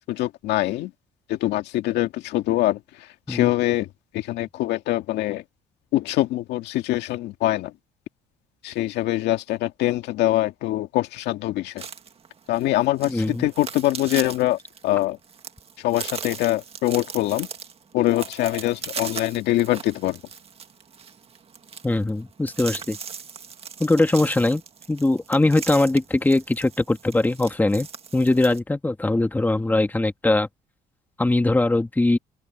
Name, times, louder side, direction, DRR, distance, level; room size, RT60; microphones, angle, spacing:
voice 1, 0.1-0.9 1.3-5.4 5.9-7.7 8.6-11.8 12.5-15.2 15.8-17.5 17.9-20.2, left 16 dB, 85° left, 2.1 m, -24 dB
sound 1, 11.8-28.6, right 6 dB, 35° right, 1.8 m, -38 dB
voice 2, 13.1-13.5 21.8-23.0 23.8-24.6 24.9-27.9 28.1-30.5 31.2-32.2, left 2 dB, 10° left, 1.8 m, -21 dB
cardioid pair, 110°, 17 cm